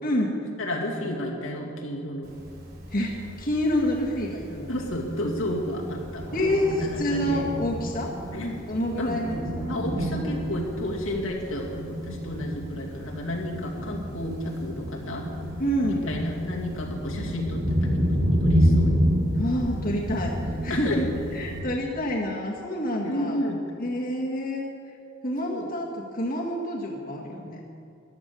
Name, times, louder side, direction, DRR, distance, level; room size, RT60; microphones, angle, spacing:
voice 1, 0.0-0.3 2.9-4.7 6.3-8.1 8.7-9.8 15.6-16.1 19.3-21.1 21.3-23.4 23.8-24.6 25.2-27.6, equal, 45° left, -2 dB, 1.7 m, -28 dB
voice 2, 0.6-2.3 4.7-6.2 6.8-7.4 8.3-8.6 9.0-9.2 9.7-15.2 15.9-19.0 20.7-21.0 23.0-23.6 25.5-25.7, left 1 dB, 85° left, -2 dB, 2.4 m, -31 dB
Thunder, 2.2-21.6, equal, 50° right, 4.5 m, -29 dB
14.5 x 11.0 x 6.9 m, 2.4 s
head